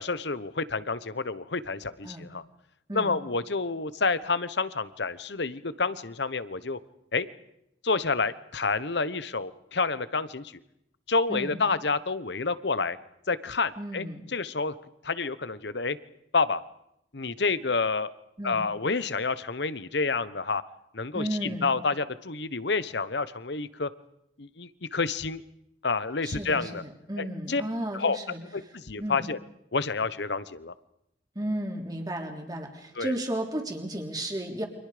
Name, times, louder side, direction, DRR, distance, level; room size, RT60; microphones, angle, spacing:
voice 1, 0.0-2.4 2.9-6.8 7.1-7.3 7.8-10.5 11.1-13.0 13.3-14.1 14.3-14.7 15.0-16.0 16.3-16.6 17.1-18.1 18.4-20.6 20.9-23.9 24.4-25.4 25.8-26.8 27.2-27.6 27.9-28.2 28.5-29.4 29.7-30.7 33.0-33.1, left 4 dB, 65° left, 15 dB, 1.1 m, -29 dB
voice 2, 11.3-11.6 13.8-14.2 18.4-18.6 21.1-21.7 26.2-28.4 29.0-29.2 31.4-34.7, right 1 dB, 20° right, 2 dB, 3.5 m, -33 dB
29.5 x 25.5 x 5.1 m, 0.79 s
head